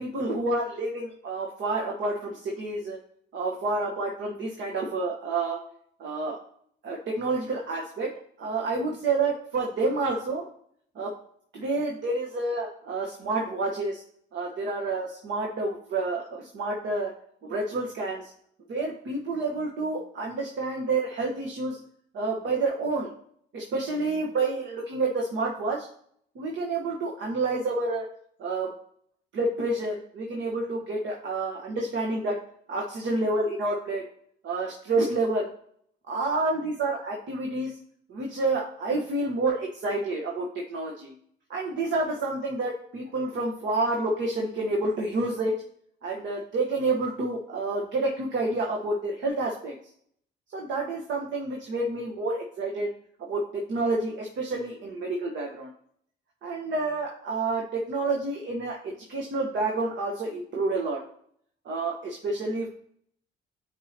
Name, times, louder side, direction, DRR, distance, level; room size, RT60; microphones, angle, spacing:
voice 1, 0.0-3.0 3.3-5.6 6.0-6.4 6.8-8.1 8.4-10.4 10.9-11.1 11.5-14.0 14.3-17.1 17.4-18.3 18.7-21.8 22.1-23.1 23.5-25.9 26.3-28.0 28.4-28.7 29.3-32.4 32.7-34.0 34.4-35.5 36.1-37.8 38.1-41.1 41.5-45.5 46.0-49.8 50.5-52.9 53.3-53.4 53.7-55.7 56.4-61.0 61.6-62.7, right 2 dB, 70° right, -1 dB, 1.2 m, -29 dB
9.3 x 4.6 x 2.9 m, 0.66 s
cardioid pair, 90°, 20 cm